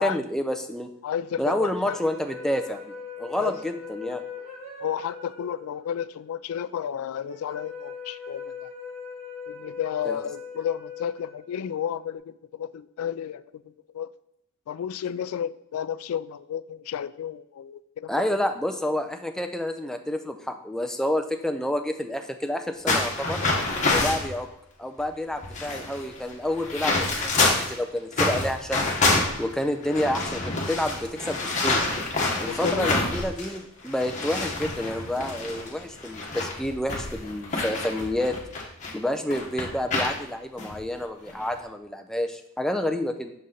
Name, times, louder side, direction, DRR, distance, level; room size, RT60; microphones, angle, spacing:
voice 1, 0.0-0.9 1.4-2.8 3.2-4.2 10.0-10.2 18.1-23.4 23.9-24.5 24.8-28.8 29.4-31.8 32.4-38.4 38.9-43.3, left 1 dB, ahead, 5 dB, 0.4 m, -29 dB
voice 2, 1.0-2.0 3.4-3.6 4.8-8.7 9.5-13.4 13.9-14.1 14.7-18.1 32.5-33.0 42.8-43.0, left 9 dB, 80° left, 15 dB, 0.3 m, -32 dB
sound 1, 1.6-12.0, left 5 dB, 25° right, 1.5 m, -41 dB
sound 2, 22.9-24.3 25.0-25.1 25.3-27.7 28.1-33.6 33.9-38.9 39.3-40.2 40.6-40.7 41.3-41.6, left 2 dB, 35° left, 1.2 m, -27 dB
6.4 x 4.1 x 3.8 m, 0.84 s
head